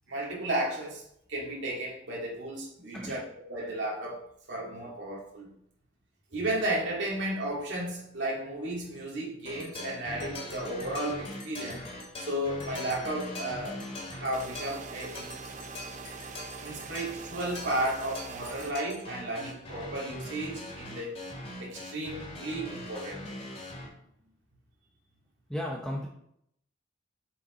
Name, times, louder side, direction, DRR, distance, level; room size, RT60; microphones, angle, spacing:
voice 1, 0.1-1.0 1.3-4.2 4.5-5.5 6.3-11.8 12.2-13.8 14.1-15.4 16.6-21.2 21.6-23.2, right 1 dB, 70° right, -4 dB, 2.1 m, -34 dB
voice 2, 2.9-3.2 25.5-26.1, equal, 5° left, -2 dB, 0.7 m, -34 dB
sound 1, 9.5-23.9, left 1 dB, 35° left, 2.1 m, -42 dB
sound 2, 14.3-18.7, right 4 dB, 40° right, 0.6 m, -43 dB
6.9 x 5.2 x 4.2 m, 0.72 s
head